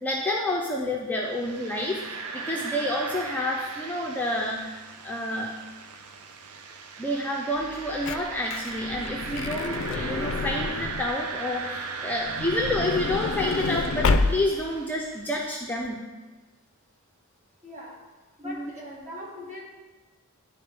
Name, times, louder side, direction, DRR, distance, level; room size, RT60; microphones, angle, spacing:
voice 1, 0.0-5.6 7.0-16.0 18.4-18.7, left 1 dB, 10° left, -2 dB, 0.5 m, -29 dB
sound 1, 1.2-15.2, right 4 dB, 80° right, 0.6 m, -38 dB
Truck / Door, 7.6-11.2 12.2-14.7 15.4-15.5 15.7-15.9, left 3 dB, 60° left, 0.4 m, -29 dB
voice 2, 17.6-18.0 18.4-19.6, left 1 dB, 35° right, -5 dB, 1.9 m, -40 dB
11.0 x 4.0 x 3.4 m, 1.2 s
head